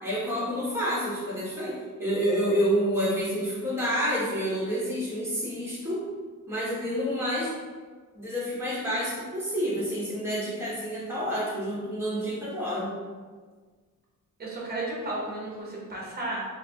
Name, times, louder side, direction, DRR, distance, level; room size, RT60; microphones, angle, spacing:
voice 1, 0.0-6.0 6.5-7.5 8.1-12.9, equal, 10° right, -9 dB, 1.1 m, -28 dB
voice 2, 14.4-16.5, right 2 dB, 30° right, -4 dB, 0.9 m, -33 dB
4.5 x 2.5 x 2.3 m, 1.5 s
wide cardioid pair, 170°, 32 cm